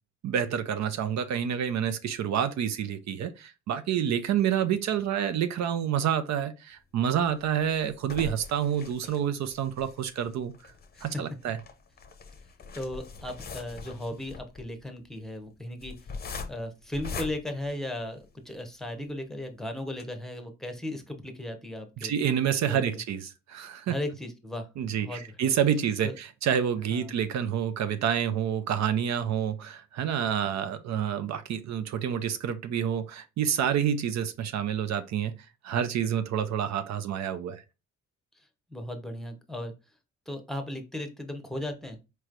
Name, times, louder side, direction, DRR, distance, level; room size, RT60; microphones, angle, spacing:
voice 1, 0.2-10.5 11.0-11.6 22.0-23.9 24.8-35.3 35.6-37.6, right 9 dB, 65° right, 0.5 m, -28 dB
sound 1, 7.1-18.5 19.0-19.1 19.4-19.5 19.9-20.0, left 4 dB, 30° left, 0.7 m, -42 dB
voice 2, 12.7-16.0 16.5-22.1 22.7-22.8 23.9-25.4 26.0-26.2 26.9-27.1 38.7-39.7 40.3-42.0, left 1 dB, ahead, 0.9 m, -36 dB
4.5 x 3.1 x 2.5 m
cardioid pair, 90°, 30 cm